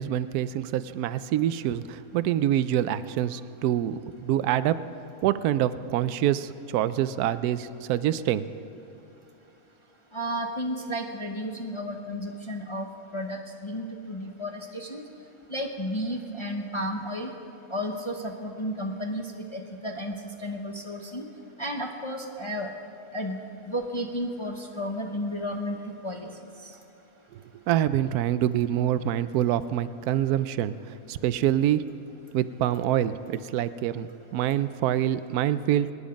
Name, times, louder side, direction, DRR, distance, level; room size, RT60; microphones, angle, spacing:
voice 1, 0.0-4.8 5.2-8.5 27.3-31.9 32.3-35.9, right 11 dB, 80° right, 13 dB, 1.1 m, -26 dB
voice 2, 10.1-12.9 13.1-15.0 15.5-17.3 17.7-20.1 20.4-21.2 21.6-22.7 23.1-25.8 26.0-26.3, equal, 25° left, 2 dB, 0.8 m, -32 dB
24.5 x 9.9 x 5.2 m, 2.9 s
omnidirectional pair, 1.6 m